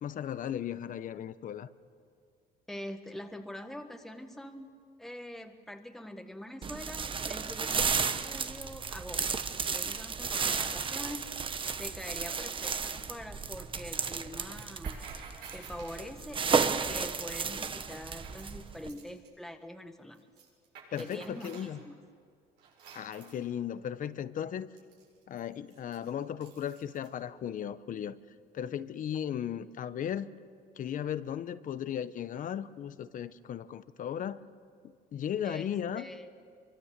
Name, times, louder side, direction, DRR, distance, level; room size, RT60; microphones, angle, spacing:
voice 1, 0.0-1.7 20.9-21.8 22.9-24.7 25.3-28.1 28.5-30.3 30.8-34.4 35.1-36.1, left 9 dB, 50° left, 14 dB, 0.9 m, -36 dB
voice 2, 2.7-4.7 5.0-9.4 9.7-11.4 11.8-15.0 15.5-20.3 21.0-22.0 35.4-36.3, left 1 dB, ahead, 5 dB, 1.5 m, -44 dB
sound 1, 6.6-18.9, right 5 dB, 30° right, 1.0 m, -33 dB
sound 2, 11.6-12.8 14.4-16.1 17.7-19.3 20.1-21.7 22.6-23.4 24.8-27.1, right 5 dB, 85° right, 7.5 m, -52 dB
26.0 x 24.0 x 7.5 m, 2.2 s
cardioid pair, 110°, 17 cm